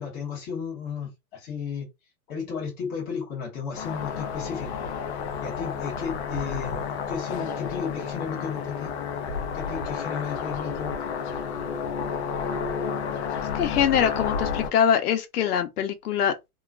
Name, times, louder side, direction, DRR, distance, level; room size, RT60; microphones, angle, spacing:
voice 1, 0.0-1.9 2.3-4.9 5.4-6.8 7.1-8.9 9.5-11.1, left 6 dB, 20° left, 1.1 m, -34 dB
sound 1, 3.7-14.7, left 6 dB, 50° left, 0.6 m, -31 dB
voice 2, 13.5-16.3, left 9 dB, 75° left, 0.9 m, -23 dB
2.9 x 2.3 x 2.3 m
supercardioid pair, 165°, 45 cm